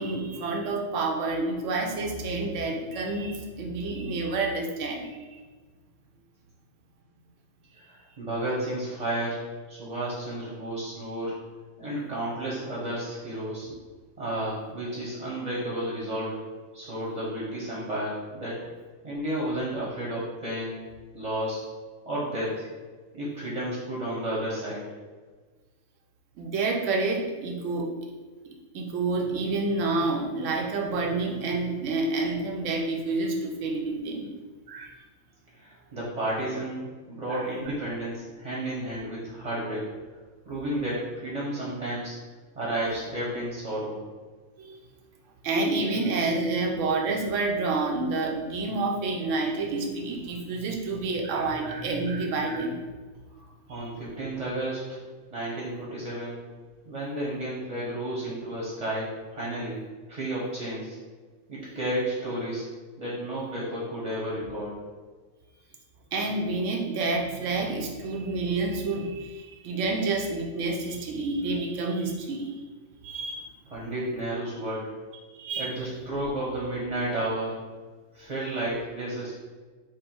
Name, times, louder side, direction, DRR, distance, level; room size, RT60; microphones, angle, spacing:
voice 1, 0.0-5.4 26.4-27.9 28.4-34.3 34.7-34.9 37.3-37.5 44.6-44.8 45.4-52.8 53.7-53.9 66.1-72.6 73.0-73.5 75.3-75.8, right 3 dB, 70° right, 1 dB, 1.0 m, -29 dB
voice 2, 7.8-9.4 9.7-11.3 11.8-13.7 14.2-16.4 16.7-18.7 19.0-20.8 21.1-21.6 22.0-22.6 23.1-24.8 35.5-39.9 40.5-42.1 42.5-44.0 53.7-55.0 55.3-56.4 56.8-59.8 60.1-61.0 61.5-62.6 63.0-64.7 73.7-74.9 75.6-77.6 78.1-79.4, right 1 dB, 30° right, -6 dB, 0.9 m, -32 dB
4.9 x 2.2 x 4.4 m, 1.4 s
omnidirectional pair, 1.4 m